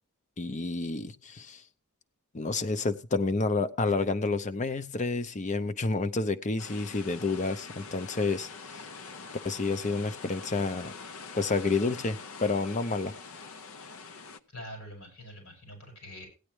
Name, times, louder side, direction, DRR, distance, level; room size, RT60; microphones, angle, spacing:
voice 1, 0.4-1.6 2.3-8.5 9.4-10.9 11.3-13.1, left 3 dB, 35° left, 12 dB, 0.6 m, -29 dB
sound 1, 6.6-14.4, left 4 dB, 65° left, 0.7 m, -44 dB
voice 2, 14.5-16.3, equal, 85° left, 1 dB, 7.6 m, -44 dB
16.5 x 9.9 x 3.2 m, 0.32 s
head